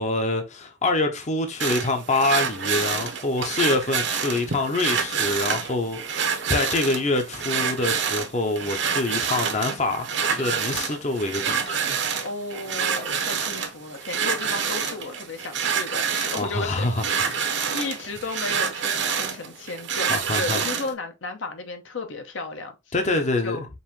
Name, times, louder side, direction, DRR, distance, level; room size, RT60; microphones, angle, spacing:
voice 1, 0.0-12.0 16.4-17.8 20.1-20.6 22.9-23.6, left 2 dB, 35° left, 0.6 m, -26 dB
sound 1, 1.6-20.9, right 6 dB, 65° right, 0.8 m, -27 dB
voice 2, 12.2-17.3 17.7-22.9 23.4-23.7, left 3 dB, 75° left, 0.8 m, -34 dB
5.3 x 2.6 x 3.0 m
head